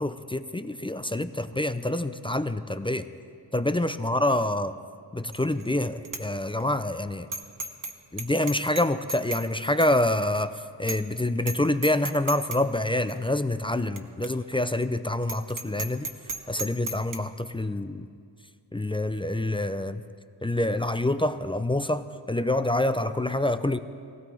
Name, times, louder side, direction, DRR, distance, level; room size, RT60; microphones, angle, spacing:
voice 1, 0.0-3.1 3.5-4.8 5.1-7.3 8.1-10.5 10.8-16.1 16.5-18.1 18.7-20.0 20.4-23.8, left 1 dB, 10° left, 11 dB, 0.5 m, -26 dB
Bicycle bell, 5.3-5.7 6.1-6.2 6.6-6.7 7.3-7.9 8.2-9.5 9.8-9.9 10.4-10.5 10.9-11.1 11.4-11.6 11.8-12.6 13.1-13.2 14.0-14.1 14.2-14.3 14.7-14.8 15.2-17.2, right 3 dB, 45° right, 1.2 m, -34 dB
18.0 x 16.5 x 4.7 m, 2.2 s
cardioid pair, 80°, 44 cm